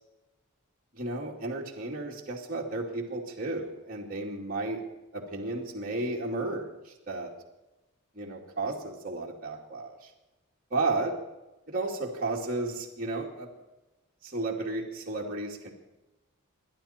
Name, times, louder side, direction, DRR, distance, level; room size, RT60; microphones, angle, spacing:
voice 1, 1.0-4.8 5.1-7.3 8.1-10.1 10.7-11.1 11.7-13.5 14.2-15.7, right 2 dB, 40° right, -3 dB, 2.4 m, -33 dB
28.0 x 11.5 x 4.4 m, 1.1 s
head